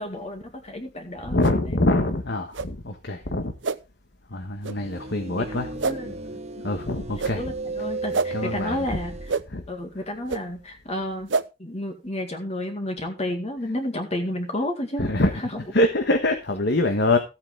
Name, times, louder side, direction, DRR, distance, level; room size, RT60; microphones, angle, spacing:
voice 1, 0.0-1.7 5.4-5.5 5.8-6.2 6.6-6.7 7.3-9.1 9.7-11.3 11.6-15.3 15.5-15.6, left 1 dB, 35° left, 4 dB, 2.2 m, -31 dB
voice 2, 1.2-3.5 4.3-5.7 6.6-7.5 8.3-8.8 9.5-9.6 15.0-15.3 15.7-17.2, left 1 dB, 60° left, 6 dB, 1.5 m, -24 dB
sound 1, 1.4-1.6 2.5-2.7 3.6-3.8 4.6-4.8 5.8-6.0 7.2-7.4 8.1-8.3 9.3-9.4 10.3-10.4 11.3-11.4, right 4 dB, 75° right, 0.7 m, -26 dB
sound 2, 4.7-9.3, right 3 dB, 35° right, 0.8 m, -34 dB
14.5 x 8.7 x 3.6 m, 0.27 s
head